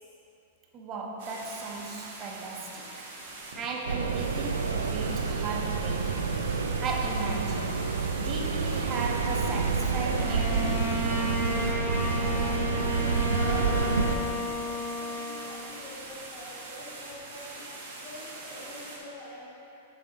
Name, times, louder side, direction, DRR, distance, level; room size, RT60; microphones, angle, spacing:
voice 1, 0.7-3.1 3.5-6.2 6.8-7.8 8.2-10.9, right 3 dB, 35° right, 0 dB, 1.2 m, -36 dB
sound 1, 1.2-19.0, right 2 dB, 60° right, 1.5 m, -43 dB
sound 2, 3.8-14.2, right 4 dB, 80° right, 0.5 m, -28 dB
Bowed string instrument, 10.2-15.9, left 1 dB, 10° left, 0.8 m, -33 dB
voice 2, 12.1-17.7 18.0-19.5, left 1 dB, 45° left, -10 dB, 1.8 m, -44 dB
7.4 x 6.5 x 4.0 m, 2.7 s
figure-of-eight pair, 100°, 0 cm